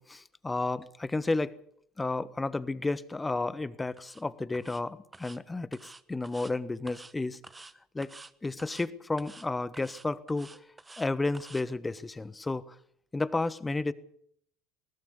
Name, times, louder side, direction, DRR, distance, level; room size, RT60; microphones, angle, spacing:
voice 1, 0.0-1.5 2.0-7.4 7.9-8.1 8.4-10.6 11.0-12.7 13.1-13.9, left 2 dB, 15° left, 16 dB, 1.3 m, -32 dB
sound 1, 4.0-4.2 4.5-4.8 5.1-5.4 5.7-6.5 6.9-7.1 7.4-7.7 8.0-8.3 8.6-8.9 9.2-9.5 9.7-11.1 11.3-11.6, right 3 dB, 15° right, 1.2 m, -49 dB
20.5 x 19.0 x 6.8 m, 0.66 s
hypercardioid pair, 65°, 0 cm